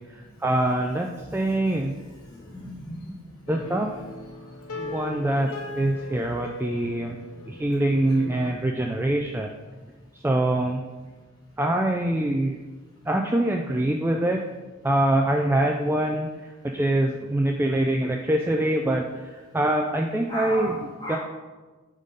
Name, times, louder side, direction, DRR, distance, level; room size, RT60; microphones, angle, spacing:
voice 1, 0.1-1.9 3.5-3.9 4.8-5.5 5.7-7.2 7.5-9.6 10.2-10.9 11.6-12.6 13.1-14.4 14.8-16.3 16.6-20.8 21.1-21.2, right 1 dB, 10° right, 2 dB, 0.3 m, -24 dB
voice 2, 1.2-1.9 2.2-3.7 4.7-4.9 5.2-5.9 20.3-21.2, left 1 dB, 20° left, -7 dB, 2.2 m, -38 dB
sound 1, 3.5-8.6, left 2 dB, 75° left, 0.7 m, -38 dB
10.5 x 3.7 x 5.1 m, 1.3 s
head